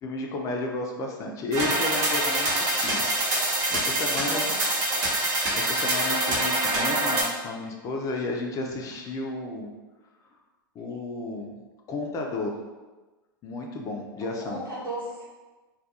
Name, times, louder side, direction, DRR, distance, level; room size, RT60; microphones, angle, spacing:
voice 1, 0.0-3.0 3.7-4.4 5.6-9.7 10.8-11.5 11.9-12.6 13.4-14.6, left 2 dB, 30° left, 1 dB, 0.4 m, -32 dB
sound 1, 1.5-7.2, right 1 dB, 50° right, 0.8 m, -25 dB
voice 2, 4.2-4.7 14.2-15.3, right 1 dB, 85° right, -7 dB, 1.1 m, -35 dB
2.2 x 2.2 x 2.7 m, 1.2 s
hypercardioid pair, 105°, 12 cm